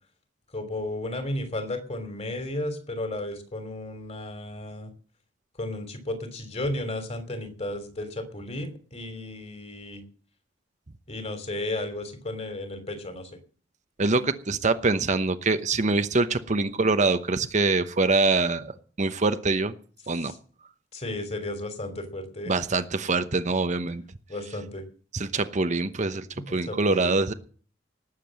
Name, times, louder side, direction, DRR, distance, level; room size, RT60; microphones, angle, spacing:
voice 1, 0.5-4.9 5.6-10.0 11.1-13.3 20.2-20.3 20.9-22.5 24.3-24.8 26.4-27.2, left 1 dB, 35° left, 9 dB, 3.1 m, -34 dB
voice 2, 14.0-18.7 19.0-19.7 20.1-20.3 22.5-24.0 25.1-27.3, right 3 dB, 40° right, 10 dB, 0.9 m, -24 dB
19.0 x 7.7 x 7.6 m, 0.42 s
head